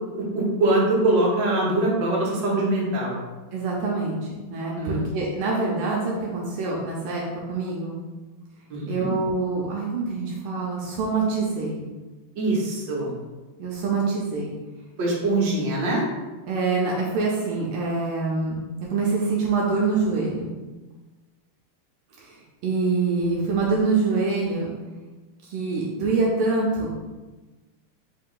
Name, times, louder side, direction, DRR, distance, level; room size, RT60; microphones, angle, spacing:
voice 1, 0.3-3.2 4.8-5.0 8.7-9.1 12.4-13.1 15.0-16.0, right 2 dB, 65° right, -4 dB, 1.7 m, -23 dB
voice 2, 3.5-7.2 7.5-8.0 8.9-11.8 13.6-14.5 16.5-18.6 18.9-20.5 22.2-24.7 25.4-26.9, right 3 dB, 85° right, -4 dB, 1.5 m, -25 dB
4.4 x 2.4 x 3.7 m, 1.2 s
omnidirectional pair, 2.3 m